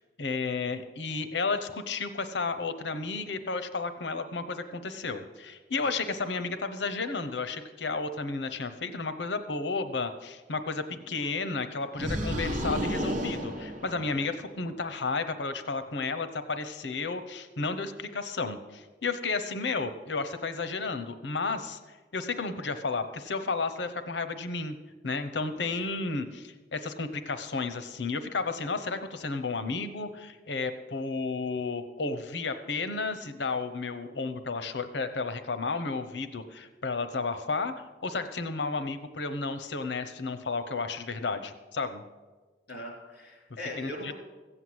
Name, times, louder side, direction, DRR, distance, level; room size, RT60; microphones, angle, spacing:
voice 1, 0.2-21.8 22.1-24.8 25.0-42.0 43.8-44.1, left 4 dB, 75° left, 10 dB, 0.9 m, -32 dB
sound 1, 12.0-14.5, equal, 45° right, 1.5 m, -32 dB
voice 2, 42.7-44.1, left 1 dB, 60° left, 0 dB, 4.0 m, -41 dB
15.0 x 7.9 x 7.9 m, 1.3 s
head